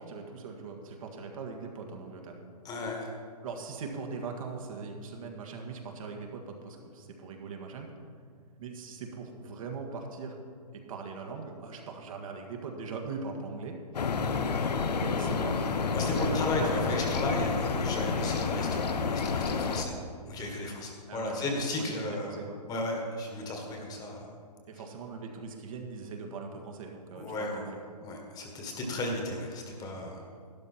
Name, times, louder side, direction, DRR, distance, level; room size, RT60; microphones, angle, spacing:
voice 1, 0.0-2.4 3.4-7.9 8.6-10.4 10.7-13.8 14.7-15.7 16.0-16.9 21.1-21.5 21.8-22.6 24.7-27.8, right 4 dB, 55° right, 2 dB, 1.8 m, -40 dB
voice 2, 2.6-3.1 15.9-19.9 20.2-22.4 22.7-24.3 27.1-27.6 28.0-30.2, left 2 dB, 20° left, 1 dB, 1.6 m, -34 dB
sound 1, 13.9-19.8, left 5 dB, 80° left, 0.9 m, -29 dB
12.0 x 11.0 x 4.4 m, 2.1 s
hypercardioid pair, 135°, 21 cm